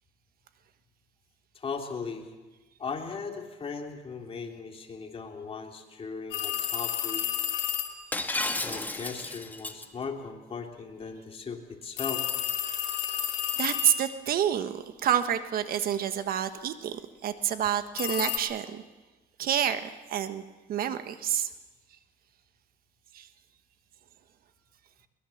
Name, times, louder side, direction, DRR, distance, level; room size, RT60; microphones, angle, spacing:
voice 1, 1.5-2.3 2.8-7.2 8.6-12.2, left 5 dB, 35° left, 2 dB, 3.2 m, -38 dB
sound 1, 6.3-8.0 12.0-14.3 18.0-18.4, left 12 dB, 85° left, 2.7 m, -31 dB
Shatter, 8.1-9.9, left 2 dB, 10° left, 1.6 m, -32 dB
voice 2, 13.6-18.8 19.4-20.4 20.7-21.5 23.1-23.3, right 10 dB, 60° right, 10 dB, 1.4 m, -28 dB
22.5 x 21.0 x 7.2 m, 1.2 s
cardioid pair, 110°, 17 cm